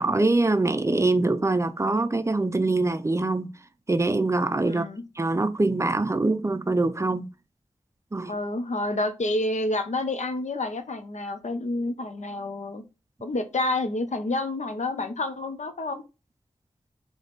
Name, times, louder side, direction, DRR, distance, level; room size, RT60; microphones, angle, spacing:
voice 1, 0.0-3.5 3.9-4.9 5.2-7.3 8.1-8.3, right 2 dB, 25° right, 0.4 m, -24 dB
voice 2, 4.6-5.0 8.3-12.8 13.2-16.0, left 2 dB, 70° left, 0.8 m, -29 dB
3.5 x 3.2 x 4.0 m
wide cardioid pair, 75°, 12 cm